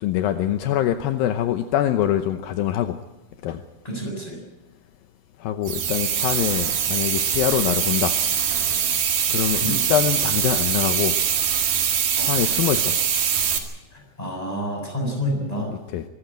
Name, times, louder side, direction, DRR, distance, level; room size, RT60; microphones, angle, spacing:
voice 1, 0.0-3.0 3.4-3.6 5.4-8.2 9.3-11.2 12.2-12.9 15.9-16.1, left 11 dB, 80° left, 8 dB, 2.1 m, -24 dB
voice 2, 3.8-4.4 9.6-9.8 12.2-12.3 13.9-15.7, equal, 10° left, 1 dB, 7.0 m, -29 dB
sound 1, 5.7-13.6, right 8 dB, 55° right, 3.3 m, -23 dB
24.5 x 14.0 x 9.0 m, 1.0 s
omnidirectional pair, 5.2 m